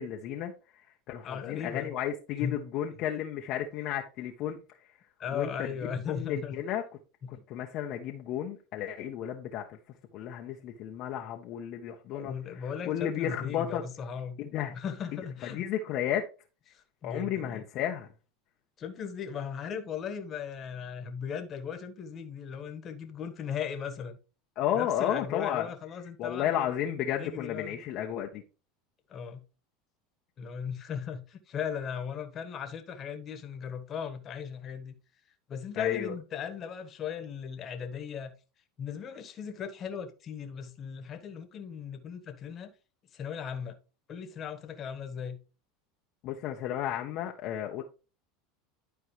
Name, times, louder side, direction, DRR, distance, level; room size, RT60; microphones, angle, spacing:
voice 1, 0.0-4.8 5.3-6.8 7.3-9.8 10.1-13.8 14.4-14.7 15.5-16.2 17.0-18.1 24.6-25.7 26.2-28.4 35.8-36.2 46.2-47.8, left 10 dB, 55° left, 0.9 m, -33 dB
voice 2, 1.2-1.9 2.4-2.6 5.2-6.6 7.3-7.4 11.9-14.4 14.7-15.7 16.7-17.6 18.8-24.2 24.7-26.7 27.2-27.8 29.1-29.4 30.4-34.9 35.5-38.3 38.8-42.7 43.1-43.8 44.1-45.4, left 7 dB, 40° left, 1.4 m, -37 dB
11.5 x 4.6 x 3.2 m
hypercardioid pair, 95°, 0 cm